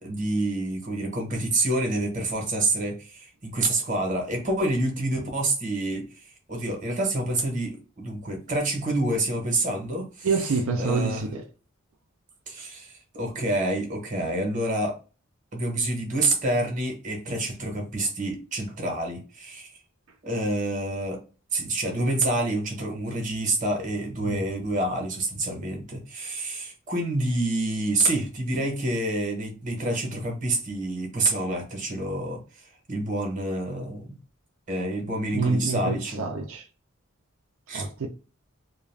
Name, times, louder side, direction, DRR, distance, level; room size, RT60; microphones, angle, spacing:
voice 1, 0.0-10.3 10.8-11.2 12.5-15.0 15.5-19.7 20.2-21.2 21.5-32.6 32.9-34.2 34.7-36.2 37.7-37.9, right 2 dB, 40° right, 0.9 m, -28 dB
voice 2, 10.2-11.4 24.2-24.4 35.3-36.7 37.7-38.1, right 4 dB, 90° right, 0.5 m, -27 dB
2.4 x 2.2 x 3.2 m
head